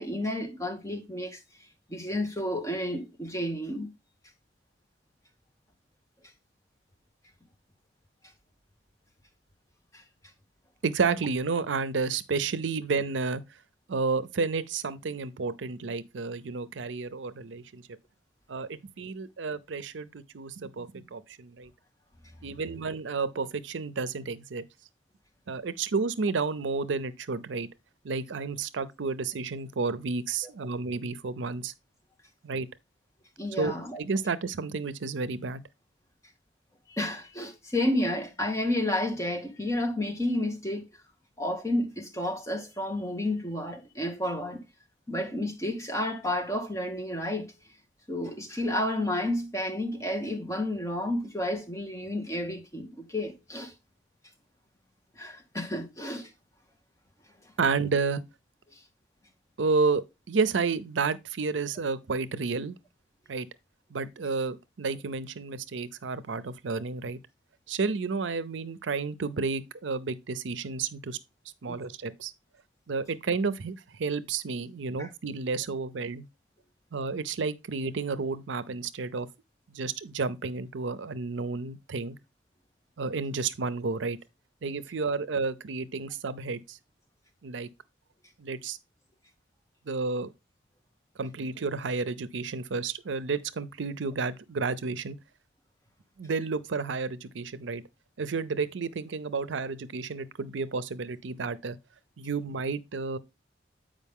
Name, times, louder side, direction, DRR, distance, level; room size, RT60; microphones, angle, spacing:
voice 1, 0.0-1.4 1.9-3.9 9.9-10.0 33.4-34.0 36.9-40.8 41.4-44.6 45.1-47.5 48.1-53.7 55.2-56.3 71.7-71.8 75.0-75.1, left 1 dB, 15° left, 1.2 m, -31 dB
voice 2, 10.8-13.4 13.9-17.8 18.5-21.7 22.4-24.6 25.5-27.7 28.0-31.7 32.4-32.7 33.6-35.6 57.6-58.2 59.6-60.0 60.3-62.8 63.3-63.5 63.9-67.2 67.7-71.2 71.6-72.3 72.9-76.2 76.9-79.3 79.7-82.2 83.0-84.2 84.6-86.8 87.4-87.7 88.4-88.8 89.9-90.3 91.2-95.2 96.2-97.8 98.2-101.8 102.2-103.2, right 4 dB, 90° right, 0.6 m, -31 dB
8.3 x 5.1 x 3.6 m
head